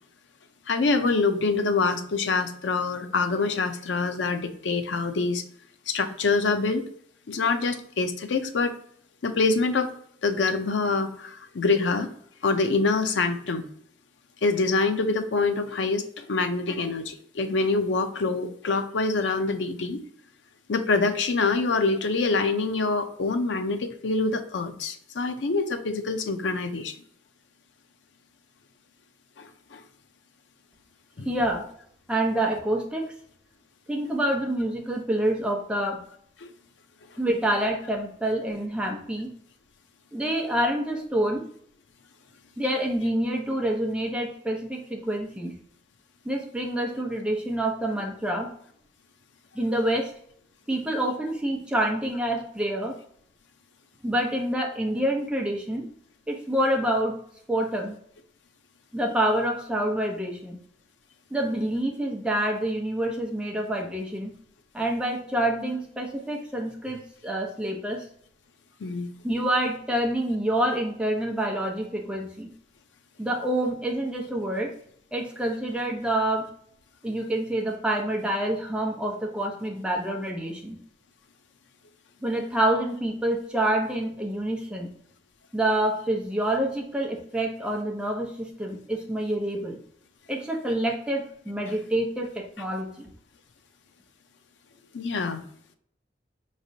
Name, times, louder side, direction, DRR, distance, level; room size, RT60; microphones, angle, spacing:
voice 1, 0.7-5.4 5.9-6.9 7.3-8.7 9.2-9.9 10.2-12.1 12.4-13.6 14.4-20.0 20.7-26.9 29.4-29.8 31.2-31.3 68.8-69.1 94.9-95.4, left 3 dB, 90° left, 7 dB, 0.5 m, -25 dB
voice 2, 31.2-31.7 32.1-33.1 33.9-36.0 37.2-39.3 40.1-41.4 42.6-45.5 46.2-48.5 49.5-50.1 50.7-53.0 54.0-55.8 56.3-57.2 57.5-57.9 58.9-60.6 61.3-64.3 64.7-68.0 69.2-72.5 73.2-74.7 75.1-76.5 77.0-80.8 82.2-84.9 85.5-89.8 90.3-93.1, right 1 dB, 5° right, 0 dB, 0.7 m, -27 dB
5.0 x 3.2 x 2.7 m, 0.64 s
head